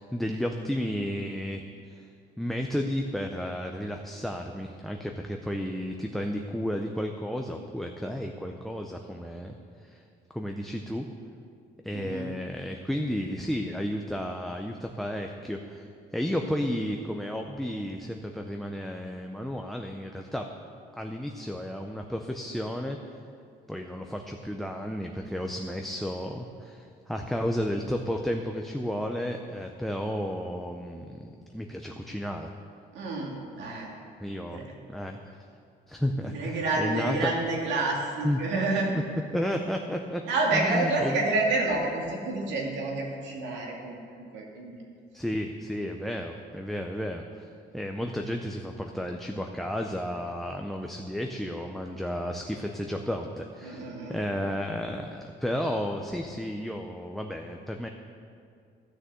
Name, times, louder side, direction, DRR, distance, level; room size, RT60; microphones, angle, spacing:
voice 1, 0.0-1.6 1.9-2.1 2.4-10.0 10.3-11.1 11.8-20.4 20.9-23.0 23.7-32.5 34.2-35.4 35.9-37.3 38.2-38.4 39.3-40.2 40.5-41.3 45.1-57.9, equal, ahead, 3 dB, 0.5 m, -32 dB
voice 2, 11.9-12.3 32.9-33.9 34.5-34.6 36.3-38.9 40.3-44.8 53.6-54.2, right 2 dB, 80° right, -1 dB, 2.4 m, -29 dB
12.5 x 6.4 x 7.5 m, 2.4 s
cardioid pair, 150°, 18 cm